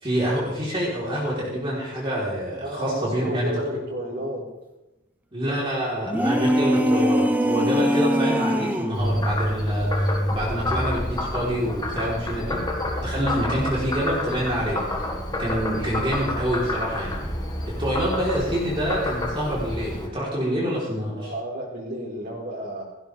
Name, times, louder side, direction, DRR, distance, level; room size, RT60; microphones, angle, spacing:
voice 1, 0.0-3.5 5.3-12.6 13.0-14.8 15.4-17.1 17.8-21.3, equal, 25° right, -6 dB, 4.0 m, -27 dB
voice 2, 2.6-4.4 21.1-22.8, equal, 50° right, -8 dB, 4.5 m, -32 dB
sound 1, 6.0-9.0, equal, 10° right, 0.9 m, -22 dB
Frog, 8.9-20.1, left 1 dB, 20° left, 1.9 m, -28 dB
18.0 x 16.0 x 3.5 m, 0.98 s
head